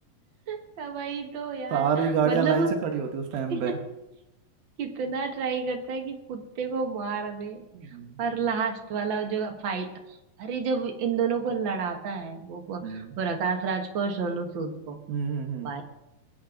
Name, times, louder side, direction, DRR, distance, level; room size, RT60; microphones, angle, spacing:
voice 1, 0.5-2.7 3.5-3.8 4.8-7.6 8.2-15.0 15.6-15.8, right 5 dB, 50° right, 3 dB, 1.5 m, -30 dB
voice 2, 1.7-3.8 7.7-8.2 12.8-13.1 15.1-15.7, right 6 dB, 80° right, 3 dB, 3.0 m, -27 dB
22.5 x 9.7 x 3.8 m, 0.94 s
omnidirectional pair, 4.2 m